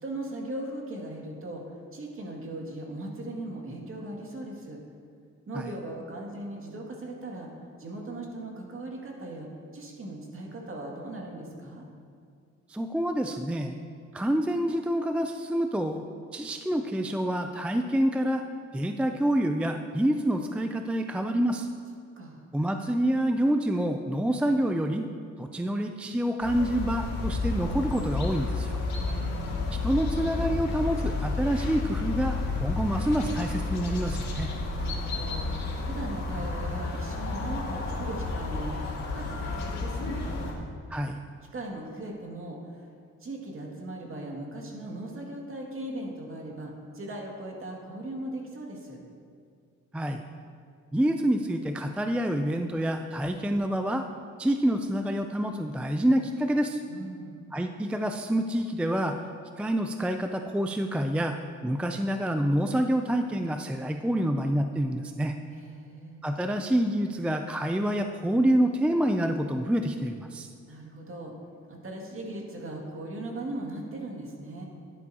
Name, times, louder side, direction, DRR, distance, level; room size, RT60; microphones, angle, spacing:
voice 1, 0.0-4.8 5.5-7.5 7.8-11.9 22.2-22.4 29.0-29.8 34.7-40.4 41.5-42.9 43.2-49.0 56.9-57.5 65.5-66.2 70.7-71.3 71.7-74.6, right 1 dB, 45° right, -1 dB, 2.2 m, -39 dB
voice 2, 12.7-13.8 14.1-16.0 16.3-18.4 18.7-21.7 22.5-25.1 25.4-28.8 29.8-34.5 40.9-41.2 49.9-50.2 50.9-54.0 54.4-56.8 57.5-59.2 59.6-61.4 61.6-65.3 66.2-70.5, right 1 dB, 5° right, 6 dB, 0.4 m, -27 dB
sound 1, 26.4-40.5, left 3 dB, 65° left, 2.2 m, -31 dB
11.5 x 11.0 x 2.8 m, 2.3 s
cardioid pair, 90°, 30 cm